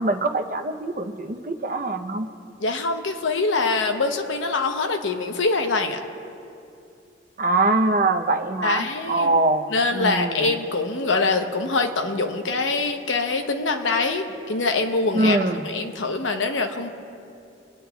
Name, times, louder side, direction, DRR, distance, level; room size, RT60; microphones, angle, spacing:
voice 1, 0.0-2.3 7.4-9.7 9.9-10.5 15.1-15.6, right 2 dB, 45° right, 7 dB, 0.6 m, -23 dB
voice 2, 2.6-6.0 8.6-9.3 9.7-15.4 15.6-16.9, left 3 dB, 85° left, 5 dB, 0.8 m, -24 dB
28.0 x 9.5 x 2.3 m, 2.6 s
head